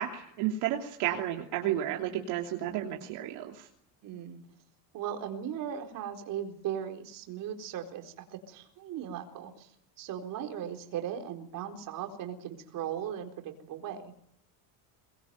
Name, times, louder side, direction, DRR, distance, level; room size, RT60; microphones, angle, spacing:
voice 1, 0.0-3.6, right 11 dB, 65° right, 1 dB, 3.0 m, -32 dB
voice 2, 4.0-4.4 4.9-9.7 10.0-14.1, right 9 dB, 50° right, 3 dB, 4.2 m, -38 dB
23.5 x 21.0 x 9.3 m, 0.71 s
cardioid pair, 155°, 43 cm